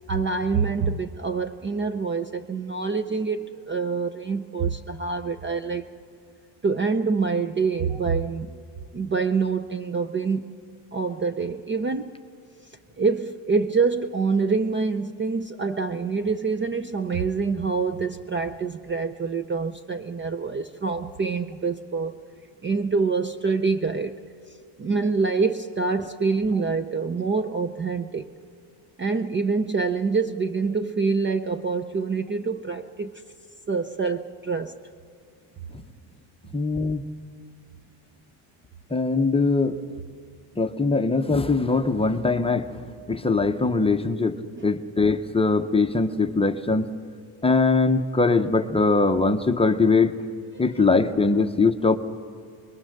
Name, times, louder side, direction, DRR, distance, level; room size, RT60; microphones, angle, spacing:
voice 1, 0.1-5.9 6.6-8.6 8.9-10.5 10.9-12.1 13.0-22.2 22.6-24.2 24.8-28.3 29.0-33.2 33.7-34.7 44.6-44.7, right 4 dB, 25° right, 10 dB, 0.5 m, -26 dB
voice 2, 36.5-37.0 38.9-39.8 40.6-44.4 44.6-46.9 47.4-50.1 50.6-52.0, left 3 dB, 10° left, 7 dB, 0.7 m, -21 dB
28.5 x 21.5 x 6.5 m, 2.3 s
cardioid pair, 145°, 50 cm